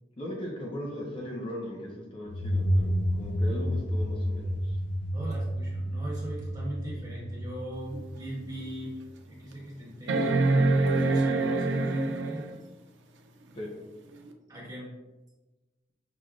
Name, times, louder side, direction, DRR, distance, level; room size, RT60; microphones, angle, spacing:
voice 1, 0.2-4.8 13.5-13.7, equal, 30° left, -1 dB, 0.5 m, -38 dB
sound 1, 2.3-8.8, equal, 80° left, 0.5 m, -30 dB
voice 2, 5.1-9.0 9.3-10.7 11.0-12.5 14.5-14.9, right 1 dB, 20° right, -5 dB, 1.0 m, -39 dB
sound 2, 7.9-8.0 8.6-8.7 10.1-12.6 14.3-14.4, right 2 dB, 90° right, 0.4 m, -25 dB
5.9 x 2.0 x 2.5 m, 1.2 s
head